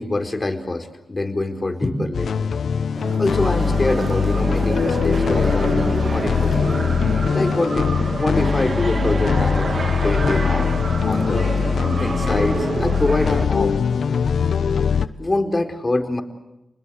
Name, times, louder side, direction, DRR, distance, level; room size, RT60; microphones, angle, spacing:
voice 1, 0.0-2.5 3.2-6.7 7.1-7.9 8.2-10.7 11.1-11.5 11.8-13.7 14.9-16.2, left 2 dB, 35° left, 5 dB, 4.6 m, -25 dB
sound 1, 2.1-15.1, left 6 dB, 80° left, 0.9 m, -21 dB
sound 2, 2.9-13.5, right 3 dB, 55° right, 2.2 m, -27 dB
29.5 x 21.0 x 8.1 m, 0.89 s
cardioid pair, 45°, 0 cm